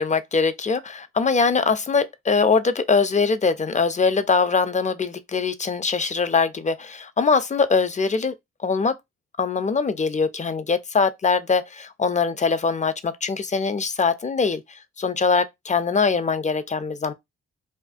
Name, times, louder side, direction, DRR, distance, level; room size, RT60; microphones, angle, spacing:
voice 1, 0.0-8.3 8.6-8.9 9.4-14.6 15.0-17.1, left 5 dB, 25° left, 0.3 m, -22 dB
2.4 x 2.2 x 2.4 m
supercardioid pair, 45°, 32 cm